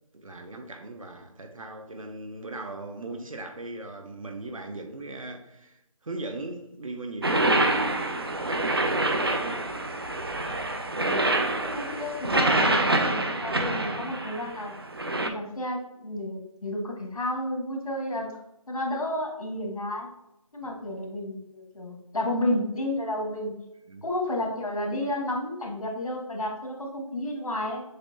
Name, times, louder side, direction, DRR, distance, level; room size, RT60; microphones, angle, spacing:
voice 1, 0.1-7.9 8.4-9.7 20.6-20.7 23.9-24.0, right 2 dB, 65° right, 0.8 m, -39 dB
sound 1, 7.2-15.3, right 2 dB, 45° right, 0.4 m, -26 dB
voice 2, 10.9-14.7 15.3-18.3 18.7-20.1 20.5-23.5 24.0-27.8, left 1 dB, 75° left, 1.5 m, -31 dB
6.6 x 2.7 x 2.7 m
figure-of-eight pair, 180°, 18 cm